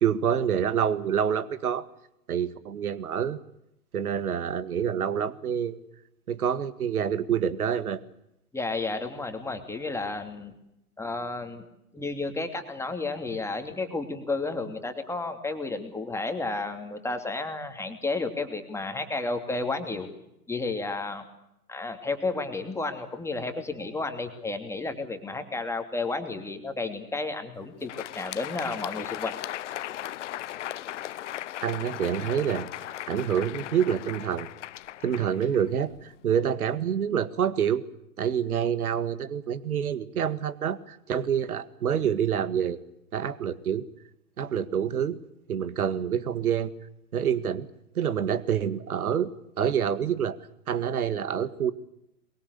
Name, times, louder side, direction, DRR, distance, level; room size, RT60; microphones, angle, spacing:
voice 1, 0.0-1.9 2.3-3.4 3.9-5.8 6.3-8.0 31.6-32.7 33.1-34.5 35.0-37.9 38.2-42.8 43.1-43.9 44.4-45.2 45.5-46.7 47.1-47.7 48.0-49.3 49.6-50.4 50.7-51.7, right 8 dB, 65° right, 15 dB, 2.0 m, -27 dB
voice 2, 8.5-10.5 11.0-11.6 11.9-20.1 20.5-21.2 21.7-29.3, left 3 dB, 5° left, 6 dB, 2.8 m, -32 dB
Crowd, 27.7-36.2, left 13 dB, 50° left, 0.8 m, -37 dB
23.5 x 23.0 x 8.3 m, 0.82 s
figure-of-eight pair, 115°, 46 cm